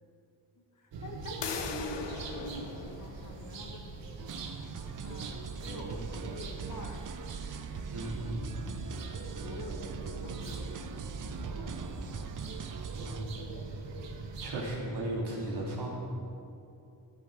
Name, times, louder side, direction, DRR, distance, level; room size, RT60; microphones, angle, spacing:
voice 1, 0.7-3.9 4.5-7.1 9.2-12.1, left 2 dB, 45° left, 2 dB, 1.8 m, -45 dB
sound 1, 0.9-14.8, right 3 dB, 85° right, 1.5 m, -42 dB
sound 2, 1.4-7.0, left 6 dB, 75° left, 1.0 m, -44 dB
sound 3, 4.2-13.3, right 7 dB, 45° right, 0.6 m, -42 dB
voice 2, 7.9-8.6 12.9-13.6 14.4-15.9, right 1 dB, 65° right, -4 dB, 3.4 m, -36 dB
14.5 x 8.5 x 6.4 m, 2.7 s
wide cardioid pair, 120°, 43 cm